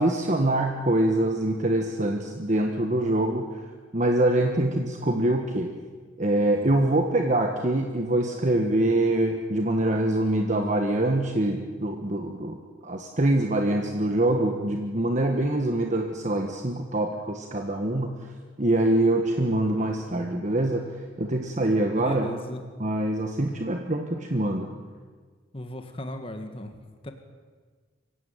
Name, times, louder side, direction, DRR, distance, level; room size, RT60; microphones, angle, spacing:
voice 1, 0.0-3.6 3.9-5.7 6.2-18.1 18.6-20.9 21.2-22.3 22.8-24.7, right 1 dB, 40° right, 3 dB, 1.4 m, -24 dB
voice 2, 21.5-22.6 25.5-27.1, left 1 dB, 30° left, 6 dB, 1.6 m, -37 dB
24.5 x 15.5 x 9.1 m, 1.6 s
head